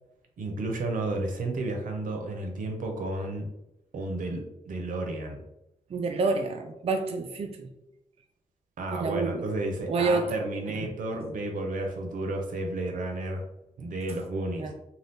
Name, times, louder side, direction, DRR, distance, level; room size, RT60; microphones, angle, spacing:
voice 1, 0.4-3.5 3.9-5.4 8.8-13.4 13.8-14.7, right 2 dB, 85° right, 2 dB, 0.6 m, -32 dB
voice 2, 5.9-7.7 8.9-9.4 9.9-10.3 10.8-10.9 14.6-14.7, right 3 dB, 45° right, 4 dB, 0.3 m, -28 dB
2.7 x 2.3 x 3.4 m, 0.88 s
cardioid pair, 65°, 13 cm